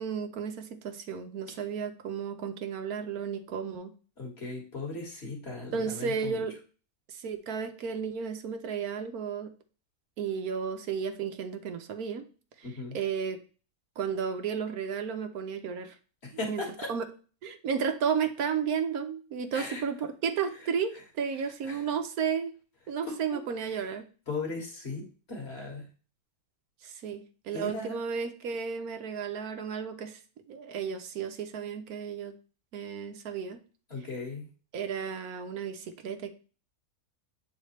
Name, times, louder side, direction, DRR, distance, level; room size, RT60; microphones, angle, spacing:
voice 1, 0.0-3.9 5.7-6.6 7.1-9.5 10.2-12.2 12.6-12.7 12.9-13.4 14.0-16.0 16.5-16.6 16.9-17.0 17.4-22.5 22.9-24.1 26.8-30.2 30.5-32.3 32.7-33.6 34.7-36.3, right 6 dB, 75° right, 8 dB, 1.3 m, -33 dB
voice 2, 4.2-6.4 12.6-13.0 16.2-16.9 19.5-19.8 21.4-21.9 23.0-23.9 24.3-25.9 27.5-28.0 33.9-34.5, left 3 dB, 45° left, 0 dB, 2.1 m, -38 dB
8.0 x 4.1 x 3.1 m, 0.37 s
omnidirectional pair, 1.6 m